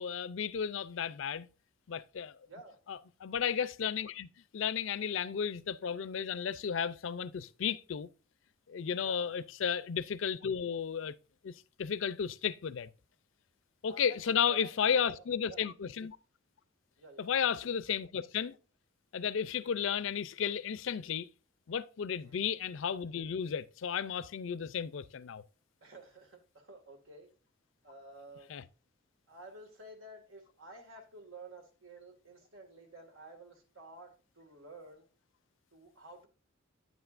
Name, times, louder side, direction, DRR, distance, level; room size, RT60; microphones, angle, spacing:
voice 1, 0.0-1.5 1.9-2.4 2.9-4.3 4.5-8.1 8.7-11.1 11.4-11.5 11.8-12.9 13.8-16.2 17.2-18.6 19.1-21.3 21.7-25.4 28.5-28.6, left 7 dB, 70° left, 0.4 m, -33 dB
voice 2, 2.5-2.8 9.0-9.4 13.9-15.6 17.0-17.6 22.2-22.5 25.8-27.3 27.8-28.5 29.3-35.1 35.7-36.3, right 2 dB, 85° right, 2.0 m, -52 dB
9.4 x 8.1 x 2.5 m
head